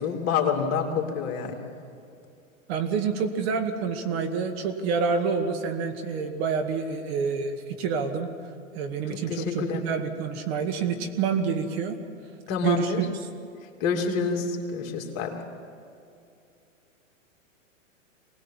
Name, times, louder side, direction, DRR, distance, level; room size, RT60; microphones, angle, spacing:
voice 1, 0.0-1.6 9.3-9.9 12.5-13.0 13.8-15.4, left 5 dB, 40° left, 1 dB, 3.0 m, -27 dB
voice 2, 2.7-8.3 8.7-12.0 12.6-13.1, right 5 dB, 50° right, 6 dB, 2.1 m, -28 dB
24.0 x 19.0 x 7.4 m, 2.6 s
hypercardioid pair, 125°, 40 cm